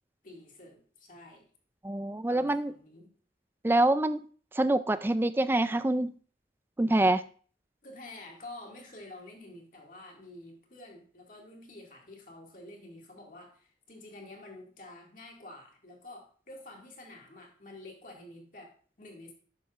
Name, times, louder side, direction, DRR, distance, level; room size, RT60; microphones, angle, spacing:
voice 1, 0.2-1.5 2.3-3.1 7.8-19.3, left 2 dB, 45° left, 0 dB, 2.1 m, -49 dB
voice 2, 1.8-2.7 3.6-4.2 4.6-6.1 6.8-7.2, right 1 dB, 10° right, 13 dB, 0.3 m, -25 dB
11.0 x 7.1 x 2.4 m, 0.42 s
head